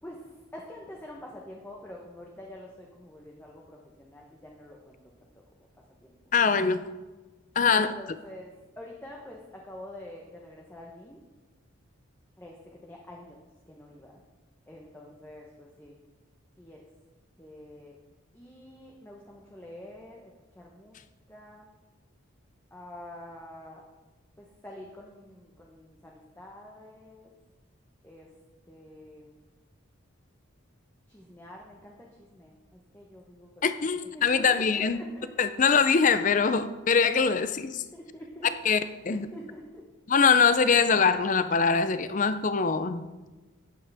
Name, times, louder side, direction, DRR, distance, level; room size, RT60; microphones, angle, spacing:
voice 1, 0.0-5.3 5.6-6.2 7.7-11.2 12.4-13.4 13.7-14.2 14.7-16.0 16.6-16.8 17.4-18.0 18.3-21.0 21.3-21.8 22.7-23.8 24.4-27.3 28.0-28.3 28.6-29.4 31.1-33.7 34.0-35.5 37.9-39.8, left 1 dB, 10° left, 1.0 m, -47 dB
voice 2, 6.3-6.9 7.6-7.9 33.6-35.0 35.4-37.8 38.6-38.8 39.1-39.3 40.1-43.0, left 5 dB, 35° left, 0.5 m, -23 dB
12.5 x 9.3 x 3.5 m
head